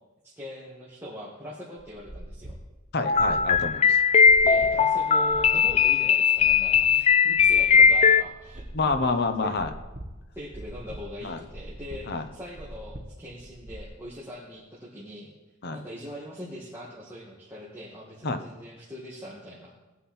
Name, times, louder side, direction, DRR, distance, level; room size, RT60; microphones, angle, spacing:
voice 1, 0.2-2.6 4.4-8.9 9.4-9.5 10.4-15.3 15.7-19.7, equal, 10° right, -6 dB, 2.1 m, -41 dB
sound 1, 1.8-13.8, right 1 dB, 40° right, 1.3 m, -43 dB
voice 2, 2.9-4.0 8.7-9.7 11.2-11.4 12.1-12.2 15.6-15.8 18.2-18.4, left 3 dB, 50° left, 7 dB, 1.1 m, -27 dB
sound 2, 3.0-8.2, left 6 dB, 30° left, 0.4 m, -19 dB
19.5 x 9.3 x 4.4 m, 1.1 s
head